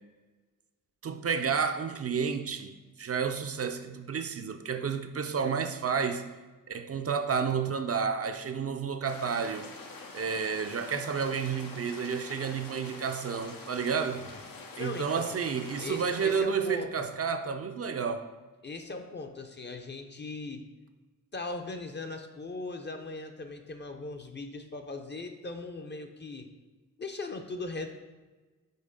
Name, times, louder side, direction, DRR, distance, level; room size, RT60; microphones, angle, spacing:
voice 1, 1.0-6.2 6.7-9.7 10.1-14.3 14.8-18.3, right 6 dB, 45° right, 0.4 m, -31 dB
sound 1, 9.1-16.4, left 3 dB, 85° left, 0.9 m, -45 dB
voice 2, 14.8-15.4 15.8-17.0 18.6-20.6 21.3-26.5 27.0-27.9, left 3 dB, 35° left, 0.5 m, -39 dB
5.4 x 3.9 x 5.1 m
wide cardioid pair, 100°, 33 cm